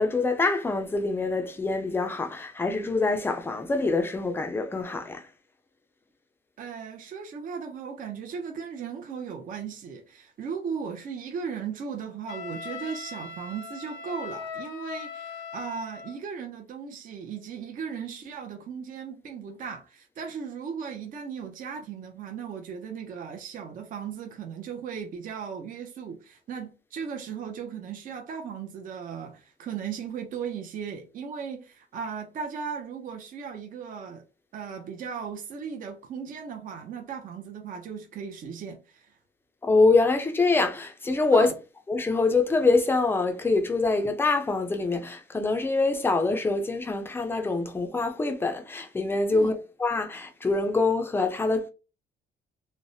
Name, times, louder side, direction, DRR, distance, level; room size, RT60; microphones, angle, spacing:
voice 1, 0.0-5.3 39.6-41.5 41.9-51.7, left 3 dB, 10° left, 0.4 m, -25 dB
voice 2, 6.6-34.2 34.5-39.2 41.3-41.5 49.3-49.6, right 6 dB, 45° right, 0.5 m, -37 dB
Wind instrument woodwind instrument, 12.3-16.2, left 5 dB, 85° left, 0.6 m, -39 dB
3.1 x 2.0 x 2.6 m
cardioid pair, 140°, 19 cm